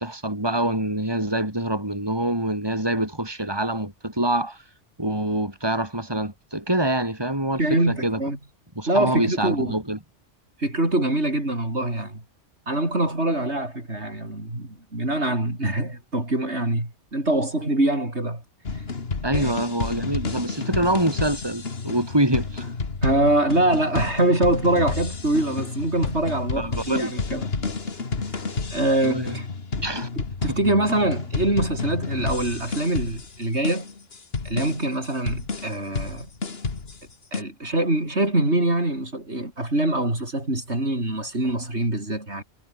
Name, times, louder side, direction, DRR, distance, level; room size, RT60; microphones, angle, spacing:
voice 1, 0.0-4.6 5.0-8.2 8.7-10.0 19.2-22.7 26.5-27.1 29.1-29.4 29.8-30.1 30.5-30.6, right 1 dB, 20° right, 5.2 m, -25 dB
voice 2, 7.6-8.4 8.9-9.7 10.6-12.2 12.7-18.4 19.3-19.5 23.0-27.5 28.7-29.5 30.4-33.9 34.4-36.3 37.3-42.4, right 1 dB, 65° right, 6.8 m, -24 dB
sound 1, 18.6-37.4, left 4 dB, 55° left, 2.2 m, -30 dB
omnidirectional pair, 1.2 m